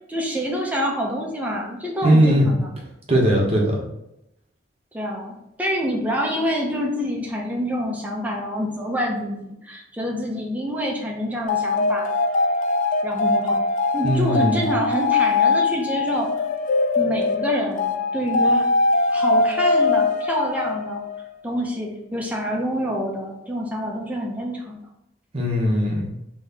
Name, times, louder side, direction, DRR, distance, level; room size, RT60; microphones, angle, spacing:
voice 1, 0.1-2.7 4.9-12.1 13.0-13.6 13.9-16.3 17.0-18.7 19.1-21.0 21.4-24.8, equal, 10° right, -2 dB, 0.8 m, -27 dB
voice 2, 2.0-2.5 3.1-3.8 14.0-14.6 25.3-26.1, equal, 35° right, -2 dB, 1.0 m, -19 dB
sound 1, 11.5-21.2, left 3 dB, 45° left, 0.4 m, -22 dB
4.1 x 3.1 x 3.5 m, 0.85 s
head